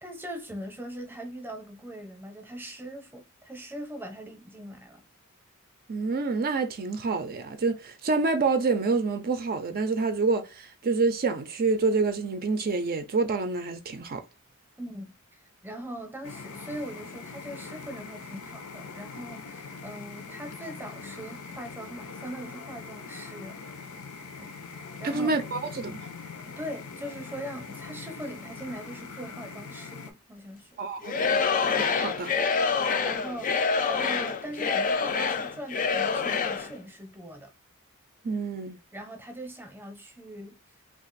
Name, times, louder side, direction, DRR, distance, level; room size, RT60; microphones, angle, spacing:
voice 1, 0.0-5.0 14.8-15.1 15.6-23.6 24.4-24.5 25.0-25.3 26.5-30.7 33.0-37.5 38.9-40.6, right 1 dB, 10° right, 0.7 m, -41 dB
voice 2, 5.9-14.2 25.0-26.0 30.8-31.4 31.7-32.3 38.2-38.8, right 4 dB, 45° right, 0.5 m, -27 dB
sound 1, 16.2-30.1, left 5 dB, 85° left, 0.6 m, -42 dB
Singing / Crowd, 31.0-36.7, left 5 dB, 40° left, 0.4 m, -26 dB
2.5 x 2.4 x 3.9 m
head